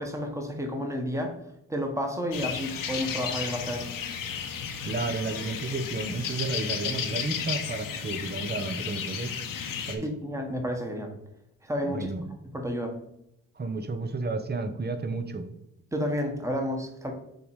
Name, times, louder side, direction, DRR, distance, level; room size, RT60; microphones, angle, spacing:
voice 1, 0.0-1.3 1.7-3.9 10.2-11.1 11.6-12.3 12.5-13.0 15.9-17.1, equal, 10° right, 3 dB, 1.6 m, -31 dB
sound 1, 2.3-9.9, left 7 dB, 70° left, 1.1 m, -33 dB
voice 2, 4.8-9.4 9.9-10.1 11.8-12.3 13.5-15.5, right 3 dB, 30° right, 8 dB, 1.0 m, -32 dB
6.9 x 4.0 x 4.8 m, 0.79 s
cardioid pair, 70°, 34 cm